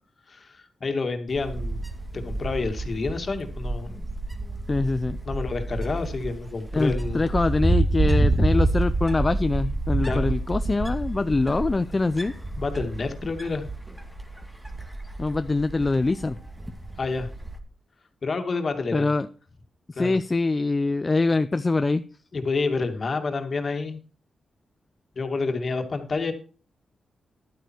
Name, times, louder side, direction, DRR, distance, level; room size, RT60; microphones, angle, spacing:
voice 1, 0.3-1.8 2.1-3.9 5.3-7.2 10.0-10.3 12.1-12.2 12.6-13.7 17.0-17.3 18.2-19.1 20.0-20.2 22.3-24.0 25.2-26.3, left 3 dB, 50° left, 6 dB, 2.3 m, -29 dB
Wind, 1.3-17.6, right 2 dB, 10° right, 2.1 m, -28 dB
voice 2, 4.7-5.2 6.7-12.3 15.2-16.4 18.9-19.3 19.9-22.0, left 3 dB, 30° left, 11 dB, 0.5 m, -24 dB
12.0 x 9.1 x 4.5 m, 0.38 s
cardioid pair, 75°, 0 cm